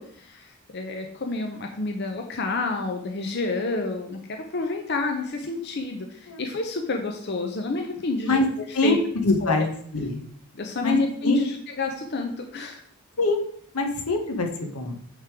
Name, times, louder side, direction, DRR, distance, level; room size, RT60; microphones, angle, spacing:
voice 1, 0.0-8.4 8.8-9.0 9.4-9.7 10.5-12.8, left 3 dB, 50° left, 3 dB, 0.7 m, -29 dB
voice 2, 8.7-9.7 9.9-10.2 10.8-11.0 11.2-11.4 13.2-13.4 13.7-15.0, left 2 dB, 80° left, 4 dB, 1.2 m, -23 dB
8.6 x 3.7 x 4.7 m, 0.64 s
head